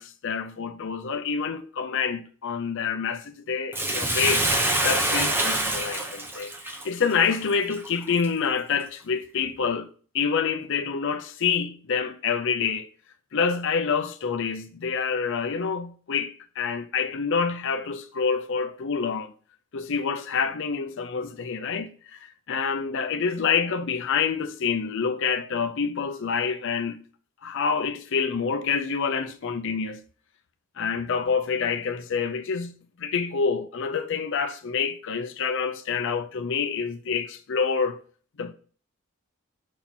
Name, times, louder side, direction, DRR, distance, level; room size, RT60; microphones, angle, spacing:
voice 1, 0.0-4.5 4.8-9.9 10.1-12.9 13.3-19.3 19.7-27.0 27.4-30.0 30.8-32.7 33.0-38.0 38.4-38.5, left 6 dB, 60° left, 0.6 m, -27 dB
Bathtub (filling or washing), 3.7-8.3 8.8-8.9, right 1 dB, 10° right, 0.9 m, -26 dB
5.4 x 4.3 x 5.9 m
head